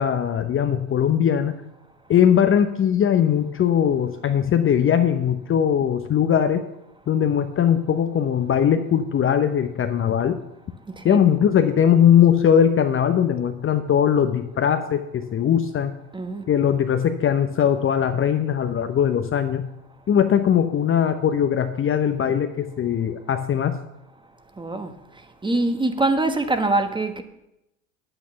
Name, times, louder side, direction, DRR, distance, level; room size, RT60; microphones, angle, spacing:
voice 1, 0.0-1.6 2.1-6.6 7.1-10.4 11.0-15.9 16.5-19.6 20.1-23.7, left 8 dB, 25° left, 0.8 m, -20 dB
voice 2, 10.9-11.2 16.1-16.4 24.6-27.2, right 2 dB, 10° right, 1.2 m, -24 dB
10.5 x 8.8 x 5.8 m
hypercardioid pair, 80°, 46 cm